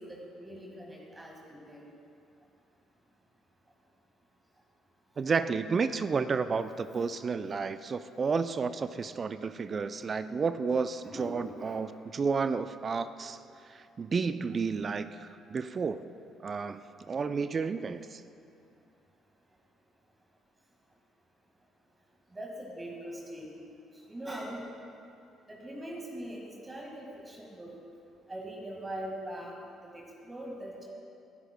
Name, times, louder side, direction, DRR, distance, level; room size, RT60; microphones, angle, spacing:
voice 1, 0.0-1.9 7.1-7.3 11.0-11.8 22.3-23.6 24.1-24.7 25.5-27.8 28.3-29.6 29.8-30.9, right 1 dB, 20° right, -1 dB, 1.8 m, -42 dB
voice 2, 5.2-13.4 13.7-16.0 16.4-18.2, right 5 dB, 40° right, 12 dB, 0.4 m, -31 dB
19.0 x 11.0 x 2.2 m, 2.6 s
hypercardioid pair, 50°, 0 cm